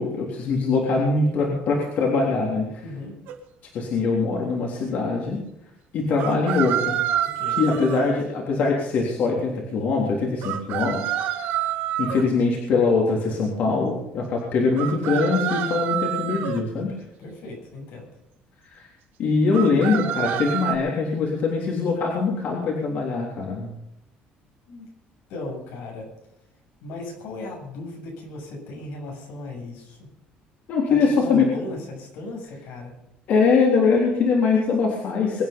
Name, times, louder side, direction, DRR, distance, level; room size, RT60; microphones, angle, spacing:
voice 1, 0.0-2.8 3.7-5.4 5.9-7.0 7.5-11.7 12.0-16.9 18.7-18.9 19.2-23.7 30.7-31.5 33.3-35.5, left 4 dB, 55° left, -2 dB, 3.6 m, -22 dB
voice 2, 2.8-3.1 7.2-7.9 17.2-18.1 24.7-24.9 25.3-26.1 26.8-30.1 30.9-32.9, left 2 dB, 85° left, 0 dB, 7.5 m, -36 dB
sound 1, 3.3-3.4 6.2-8.0 10.4-12.2 14.8-16.6 19.5-20.8, right 11 dB, 70° right, 2.0 m, -27 dB
23.5 x 9.7 x 5.4 m, 0.84 s
cardioid pair, 155°, 3 cm